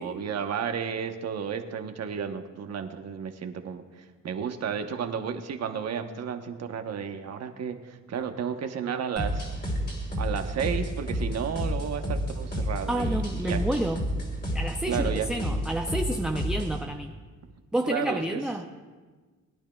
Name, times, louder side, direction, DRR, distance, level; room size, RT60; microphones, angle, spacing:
voice 1, 0.0-9.5 10.2-13.6 14.9-15.3 17.9-18.4, right 7 dB, 60° right, 7 dB, 1.0 m, -32 dB
sound 1, 9.2-16.8, equal, 35° left, 3.1 m, -30 dB
voice 2, 12.9-14.0 14.5-17.1 17.7-18.7, right 1 dB, 5° right, 3 dB, 0.6 m, -29 dB
21.5 x 10.0 x 2.3 m, 1.4 s
cardioid pair, 90°, 30 cm